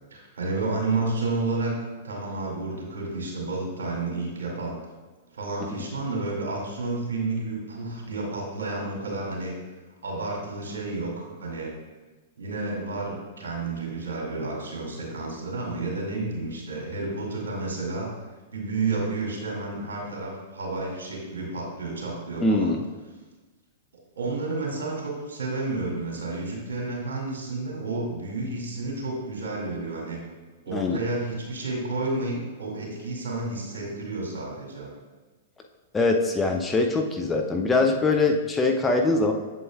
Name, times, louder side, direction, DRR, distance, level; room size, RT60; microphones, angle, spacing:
voice 1, 0.1-1.8 2.0-4.8 5.3-9.5 10.0-11.7 12.4-18.1 18.5-22.7 24.2-30.2 30.7-34.9, right 3 dB, 70° right, -2 dB, 2.4 m, -31 dB
voice 2, 22.4-22.8 30.7-31.0 35.9-39.3, left 3 dB, 15° left, 2 dB, 0.6 m, -22 dB
7.9 x 7.7 x 2.4 m, 1.3 s
figure-of-eight pair, 105°, 0 cm